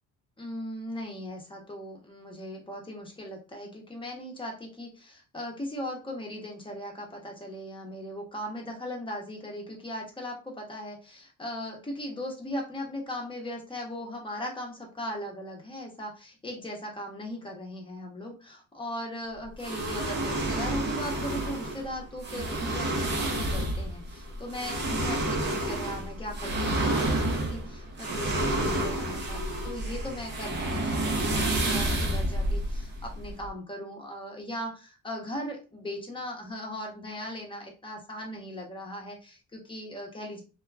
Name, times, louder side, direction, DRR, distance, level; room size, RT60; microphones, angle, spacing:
voice 1, 0.4-40.4, left 1 dB, 15° left, 0 dB, 0.9 m, -38 dB
sound 1, 19.6-33.5, right 1 dB, 35° right, 0.8 m, -29 dB
2.8 x 2.3 x 2.3 m, 0.33 s
cardioid pair, 90°, 30 cm